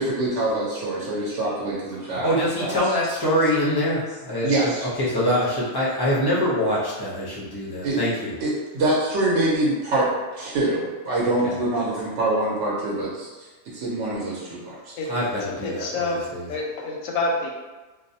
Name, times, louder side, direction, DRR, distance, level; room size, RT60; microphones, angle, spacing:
voice 1, 0.0-2.3 2.6-3.0 4.4-4.8 7.8-8.0 8.4-14.9, right 2 dB, 70° right, -6 dB, 0.9 m, -25 dB
voice 2, 2.0-8.3 11.2-11.6 15.1-16.5, equal, 35° left, -8 dB, 0.3 m, -24 dB
voice 3, 15.6-17.5, left 2 dB, 90° left, -1 dB, 1.0 m, -27 dB
2.5 x 2.0 x 2.6 m, 1.2 s
omnidirectional pair, 1.3 m